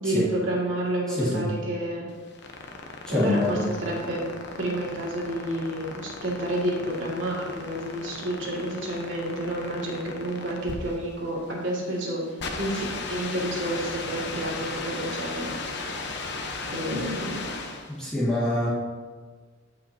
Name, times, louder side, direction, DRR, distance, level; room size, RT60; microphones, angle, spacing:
voice 1, 0.0-2.1 3.1-4.2 4.6-12.2 12.6-15.5 16.7-17.5, right 1 dB, 70° right, -4 dB, 2.2 m, -30 dB
voice 2, 1.1-1.5 3.1-3.7 16.9-17.2 17.9-18.7, left 1 dB, 5° left, -10 dB, 1.9 m, -26 dB
sound 1, 2.1-18.0, left 3 dB, 65° left, 0.9 m, -36 dB
14.5 x 5.6 x 2.8 m, 1.5 s
head